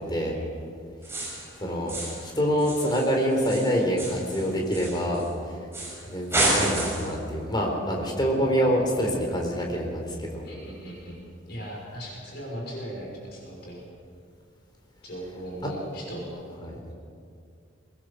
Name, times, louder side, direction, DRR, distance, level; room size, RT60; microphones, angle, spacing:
sound 1, 1.0-1.5 1.9-2.3 2.6-5.3 5.7-6.0 6.3-7.2, right 1 dB, 15° right, 6.5 m, -29 dB
voice 1, 1.5-5.6 6.1-10.5 16.6-16.8, equal, 20° left, 0 dB, 4.1 m, -26 dB
voice 2, 10.4-11.2 11.5-13.8 15.0-16.4, equal, 55° left, -2 dB, 6.0 m, -38 dB
22.5 x 20.0 x 6.8 m, 2.3 s
head